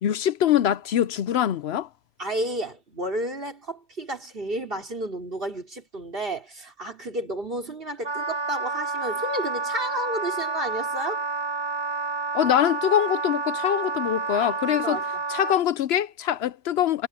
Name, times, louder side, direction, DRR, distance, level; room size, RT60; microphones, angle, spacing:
voice 1, 0.0-1.9 12.3-15.0 15.3-17.1, left 10 dB, 65° left, 0.8 m, -23 dB
voice 2, 2.2-11.2 14.4-15.0, right 1 dB, 50° right, 4.2 m, -32 dB
Wind instrument woodwind instrument, 8.0-15.6, right 3 dB, 25° right, 0.8 m, -29 dB
omnidirectional pair, 1.2 m